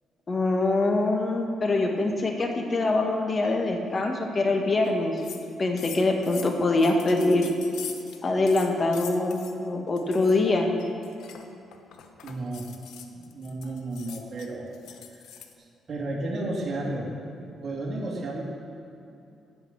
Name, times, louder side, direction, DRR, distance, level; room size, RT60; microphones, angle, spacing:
voice 1, 0.3-7.5 8.2-10.7, left 2 dB, 35° left, 2 dB, 1.8 m, -24 dB
sound 1, 4.9-5.0 5.2-5.5 5.8-8.2 8.5-9.6 10.0-10.4 10.8-15.5, left 9 dB, 80° left, 0.9 m, -43 dB
voice 2, 12.2-12.7 13.0-14.7 15.1-15.2 15.6-17.1 17.6-18.4, right 2 dB, 45° right, -4 dB, 3.0 m, -33 dB
13.5 x 5.8 x 8.7 m, 2.7 s
cardioid pair, 90°, 0 cm